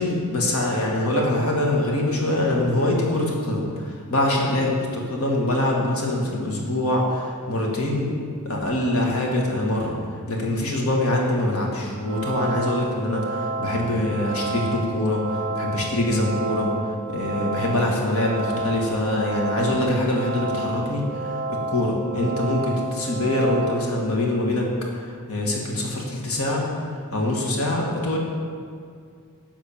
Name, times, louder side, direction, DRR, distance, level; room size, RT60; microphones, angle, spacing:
voice 1, 0.0-8.1 8.5-10.0 10.3-16.7 17.1-26.6 27.1-28.2, left 1 dB, 80° left, -1 dB, 1.6 m, -24 dB
sound 1, 12.0-23.8, right 2 dB, 40° right, 0.6 m, -30 dB
10.5 x 3.7 x 7.1 m, 2.2 s
head